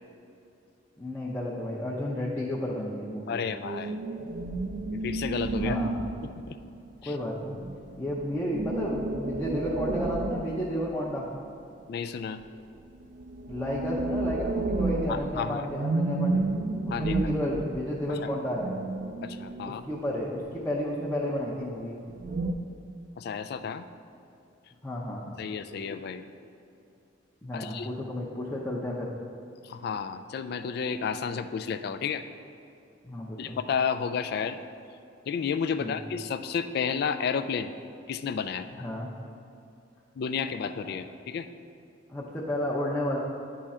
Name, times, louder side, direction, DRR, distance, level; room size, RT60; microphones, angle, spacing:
voice 1, 1.0-3.5 5.6-5.9 7.0-7.6 8.0-11.3 13.5-16.4 16.8-18.8 19.6-22.0 24.8-25.3 27.4-29.1 33.0-33.6 35.8-36.0 38.8-39.1 42.1-43.2, left 1 dB, 10° left, -6 dB, 0.6 m, -32 dB
voice 2, 3.3-4.0 4.9-5.8 6.2-6.6 7.0-7.1 11.9-12.4 15.1-15.7 16.9-17.2 18.1-18.3 19.2-19.8 23.2-23.9 25.4-26.2 27.5-27.9 29.6-32.2 33.4-34.6 35.3-37.7 38.1-38.7 40.2-41.5, left 6 dB, 55° left, 10 dB, 0.3 m, -31 dB
sound 1, 3.6-6.8 7.5-11.4 12.9-20.0 22.1-22.5, right 2 dB, 45° right, 0.4 m, -32 dB
10.0 x 3.7 x 4.2 m, 2.6 s
head